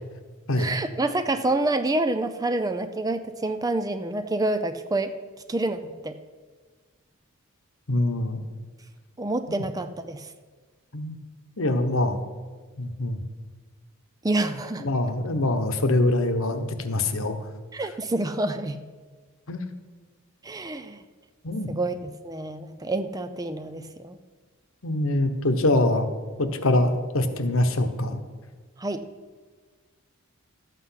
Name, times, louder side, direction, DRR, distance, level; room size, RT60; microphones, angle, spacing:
voice 1, 0.6-5.1 5.5-6.2 9.2-10.3 14.2-14.9 17.7-18.8 20.4-21.0 21.7-24.2 28.8-29.0, right 2 dB, 15° right, 10 dB, 0.4 m, -27 dB
voice 2, 7.9-8.4 9.5-9.6 10.9-11.2 11.6-12.2 12.8-13.2 14.8-17.4 19.5-19.6 21.4-21.7 24.8-26.1 26.4-28.2, left 1 dB, 65° left, 7 dB, 1.1 m, -24 dB
12.5 x 8.2 x 5.8 m, 1.5 s
head